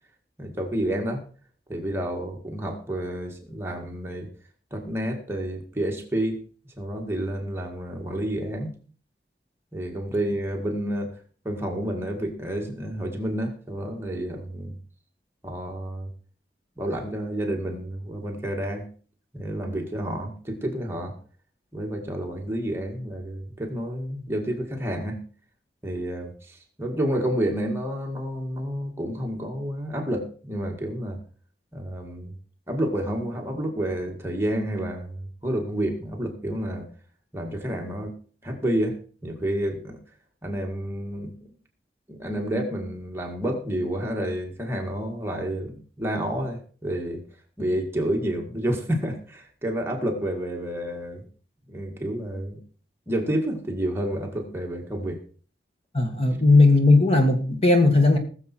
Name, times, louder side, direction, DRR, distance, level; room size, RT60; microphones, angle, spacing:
voice 1, 0.4-1.3 1.7-4.3 4.7-6.4 6.8-8.7 9.7-11.1 11.4-14.8 15.4-16.1 16.8-18.9 19.3-21.1 21.7-25.2 25.8-31.2 31.7-32.3 32.7-36.9 37.3-38.1 38.4-40.0 40.4-41.5 42.1-47.2 47.6-51.2 51.7-52.6 53.1-55.2, right 1 dB, 15° right, 1 dB, 1.9 m, -29 dB
voice 2, 55.9-58.2, left 2 dB, 35° left, 5 dB, 1.9 m, -17 dB
19.5 x 7.1 x 4.5 m, 0.42 s
head